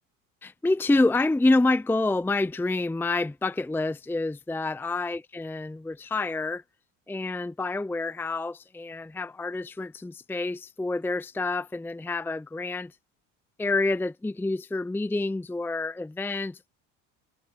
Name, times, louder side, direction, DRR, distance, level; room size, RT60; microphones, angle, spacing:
voice 1, 0.4-6.6 7.1-12.9 13.6-16.7, left 2 dB, 5° left, 0.7 m, -27 dB
supercardioid pair, 85°, 37 cm